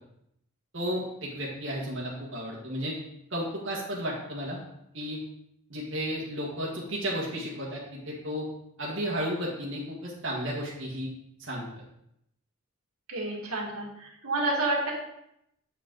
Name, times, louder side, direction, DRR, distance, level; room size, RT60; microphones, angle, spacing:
voice 1, 0.7-2.9 3.3-4.6 4.9-5.2 5.7-8.4 8.8-11.1 11.4-11.7, equal, 60° right, -5 dB, 1.6 m, -33 dB
voice 2, 13.1-14.9, right 2 dB, 85° right, -3 dB, 2.0 m, -29 dB
7.8 x 5.2 x 3.8 m, 0.77 s
head